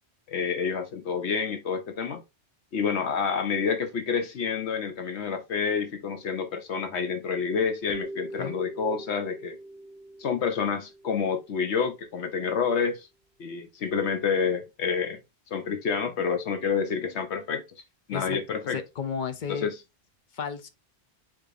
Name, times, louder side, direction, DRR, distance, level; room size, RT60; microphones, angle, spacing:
voice 1, 0.3-2.2 2.7-9.6 10.2-13.1 13.4-15.2 15.5-17.6 18.1-18.8 19.5-19.7, left 6 dB, 75° left, 1.1 m, -28 dB
sound 1, 7.9-11.9, right 2 dB, ahead, 1.3 m, -42 dB
voice 2, 18.1-19.7 20.3-20.7, left 7 dB, 50° left, 0.7 m, -33 dB
4.9 x 3.9 x 2.6 m
omnidirectional pair, 1.1 m